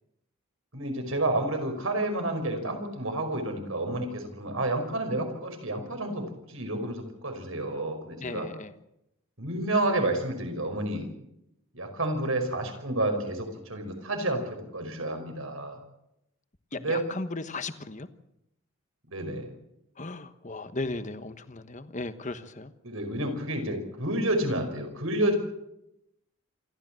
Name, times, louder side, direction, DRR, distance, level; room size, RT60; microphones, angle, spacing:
voice 1, 0.7-6.2 6.5-8.5 9.4-11.1 11.7-15.8 16.8-17.0 19.1-19.5 22.8-25.4, right 1 dB, 75° right, 5 dB, 5.3 m, -30 dB
voice 2, 8.2-8.7 16.7-18.1 20.0-22.7, left 2 dB, 35° left, 11 dB, 1.2 m, -36 dB
27.5 x 13.5 x 7.7 m, 0.83 s
head